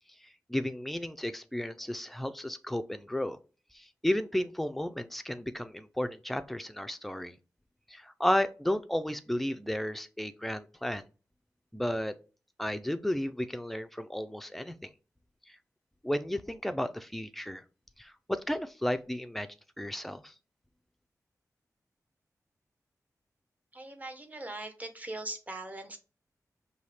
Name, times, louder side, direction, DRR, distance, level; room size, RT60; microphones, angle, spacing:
voice 1, 0.5-3.4 3.7-7.4 7.9-11.0 11.7-12.1 12.6-14.9 15.5-15.6 16.0-17.6 18.0-19.5 19.8-20.3, left 1 dB, 5° left, 10 dB, 0.3 m, -33 dB
voice 2, 23.7-26.0, right 2 dB, 25° right, 6 dB, 0.8 m, -40 dB
5.6 x 2.7 x 3.3 m, 0.35 s
wide cardioid pair, 150°, 6 cm